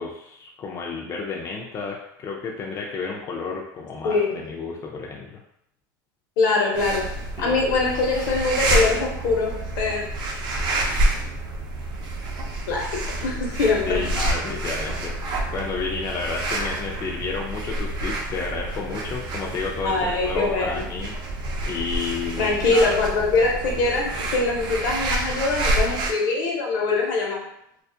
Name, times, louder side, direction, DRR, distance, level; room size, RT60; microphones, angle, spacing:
voice 1, 0.0-5.4 7.4-7.6 13.1-13.4 13.9-21.1 21.6-23.0, left 4 dB, 30° left, -1 dB, 0.4 m, -31 dB
voice 2, 6.4-7.1 7.4-10.0 12.7-14.0 19.8-20.9 22.4-27.4, left 3 dB, 70° left, -1 dB, 0.8 m, -23 dB
sound 1, 6.7-26.1, right 1 dB, 45° right, 0.5 m, -28 dB
2.3 x 2.0 x 2.7 m, 0.76 s
supercardioid pair, 115°, 11 cm